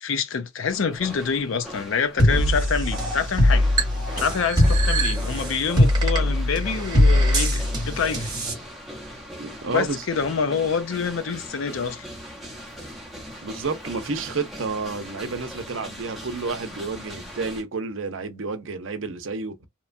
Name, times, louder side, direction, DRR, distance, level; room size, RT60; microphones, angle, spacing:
voice 1, 0.0-3.7 4.2-8.3 9.7-12.1, left 6 dB, 70° left, 0.5 m, -26 dB
sound 1, 0.6-17.6, equal, ahead, 0.8 m, -40 dB
sound 2, 2.2-8.5, equal, 20° right, 1.0 m, -21 dB
voice 2, 9.4-10.0 13.4-19.7, right 4 dB, 65° right, 0.6 m, -30 dB
2.9 x 2.2 x 2.5 m
head